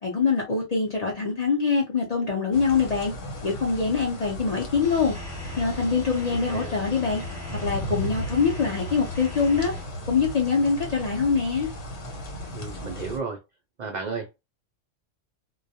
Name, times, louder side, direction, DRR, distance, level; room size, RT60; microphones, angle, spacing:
voice 1, 0.0-3.1 3.4-5.2 5.6-7.2 7.6-9.8 10.1-11.7, left 5 dB, 45° left, 0.5 m, -24 dB
sound 1, 2.5-13.2, equal, 75° left, 1.2 m, -36 dB
sound 2, 4.8-9.8, left 2 dB, 5° left, 1.0 m, -40 dB
voice 2, 12.5-13.4 13.8-14.4, right 4 dB, 70° right, 0.4 m, -33 dB
2.3 x 2.1 x 2.6 m
omnidirectional pair, 1.3 m